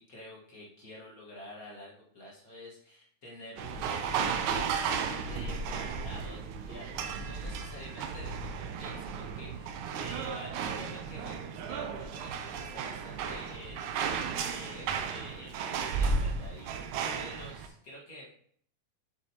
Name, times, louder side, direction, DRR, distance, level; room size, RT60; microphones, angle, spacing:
voice 1, 0.0-13.9 14.4-18.3, left 1 dB, 40° left, -4 dB, 1.3 m, -48 dB
sound 1, 3.6-17.7, right 5 dB, 75° right, 2.0 m, -34 dB
7.4 x 7.2 x 2.9 m, 0.62 s
omnidirectional pair, 3.8 m